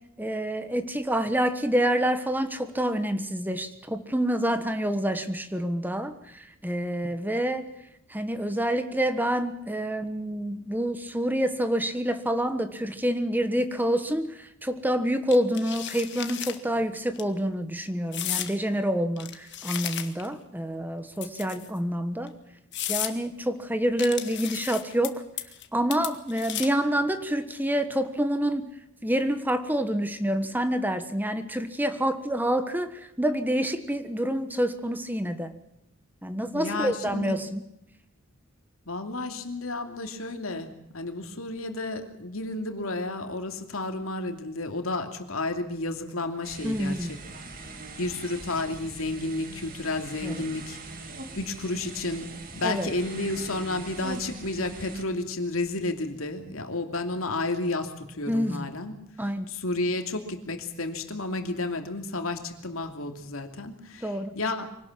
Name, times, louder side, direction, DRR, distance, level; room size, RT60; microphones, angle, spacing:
voice 1, 0.2-7.7 8.1-22.3 22.9-25.2 25.7-28.7 29.0-35.5 36.2-37.6 46.6-47.1 50.2-50.3 52.6-52.9 58.3-58.6 59.2-59.4 64.0-64.4, equal, 10° right, 9 dB, 1.3 m, -27 dB
sound 1, 15.3-16.6 17.0-17.2 18.1-18.5 19.2-20.3 21.2-21.8 22.3-22.4 22.7-23.1 24.0-25.1 25.4-25.7 25.9-26.8, left 12 dB, 55° left, 1.8 m, -34 dB
voice 2, 36.5-37.4 38.9-47.1 47.6-47.7 48.0-50.8 51.3-52.3 52.5-58.9 59.5-64.6, left 2 dB, 85° left, 5 dB, 2.8 m, -31 dB
sound 2, 46.4-55.0, right 3 dB, 45° right, 2.8 m, -42 dB
24.5 x 18.5 x 7.4 m, 0.82 s
head